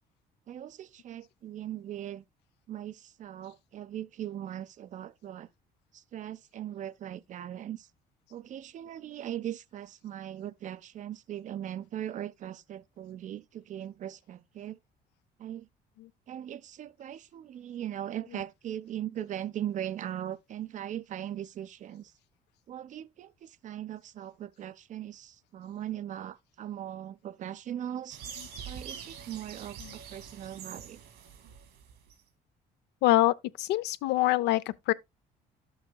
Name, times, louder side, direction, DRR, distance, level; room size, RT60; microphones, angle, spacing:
voice 1, 0.5-2.2 2.7-5.5 5.9-7.9 8.3-14.8 15.4-15.7 16.3-22.1 22.7-28.2 28.7-31.0, right 11 dB, 50° right, 0.5 m, -39 dB
sound 1, 28.1-32.2, right 7 dB, 85° right, 2.2 m, -45 dB
voice 2, 33.0-34.9, left 16 dB, 80° left, 0.5 m, -25 dB
11.5 x 7.9 x 2.2 m
cardioid pair, 110°, 17 cm